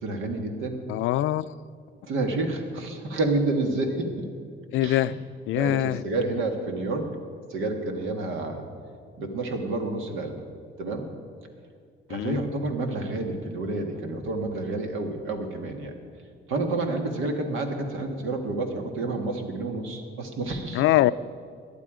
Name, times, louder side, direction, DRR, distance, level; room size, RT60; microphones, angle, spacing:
voice 1, 0.0-0.8 2.0-4.3 4.8-5.1 5.5-7.1 7.5-8.7 9.2-10.4 10.8-11.0 12.1-16.0 16.5-20.9, right 2 dB, 85° right, 4 dB, 1.8 m, -29 dB
voice 2, 0.9-1.6 4.7-5.1 5.5-6.0 12.1-12.5 20.7-21.1, left 14 dB, 80° left, 16 dB, 0.4 m, -23 dB
18.0 x 11.0 x 5.0 m, 2.2 s
cardioid pair, 90°, 20 cm